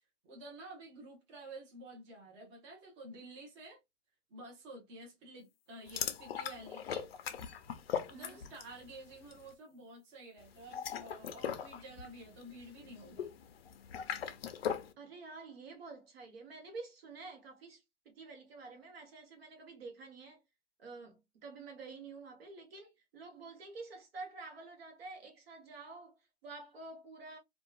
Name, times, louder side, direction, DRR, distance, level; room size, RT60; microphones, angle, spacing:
voice 1, 0.3-3.8 4.3-7.1 8.1-13.3, right 1 dB, 25° right, 1.0 m, -51 dB
sound 1, 5.9-8.8 9.1-9.4 10.5-14.9, left 8 dB, 55° left, 0.5 m, -40 dB
voice 2, 15.0-20.4 20.8-27.4, right 3 dB, 55° right, 1.0 m, -49 dB
2.7 x 2.3 x 2.3 m
hypercardioid pair, 155°, 36 cm